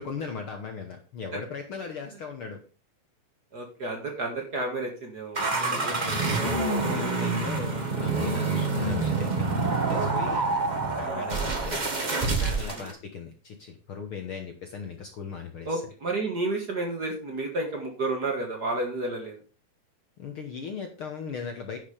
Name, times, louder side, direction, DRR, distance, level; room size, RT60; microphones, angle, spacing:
voice 1, 0.0-2.6 5.5-6.5 6.8-11.9 12.4-15.8 20.2-21.8, left 5 dB, 60° left, 4 dB, 1.5 m, -38 dB
voice 2, 3.5-5.9 7.1-7.3 11.0-11.3 12.7-12.9 15.7-19.4, right 2 dB, 40° right, 1 dB, 1.9 m, -31 dB
sound 1, 5.3-12.9, right 3 dB, 60° right, 0.4 m, -27 dB
10.5 x 6.0 x 5.0 m, 0.36 s
omnidirectional pair, 3.4 m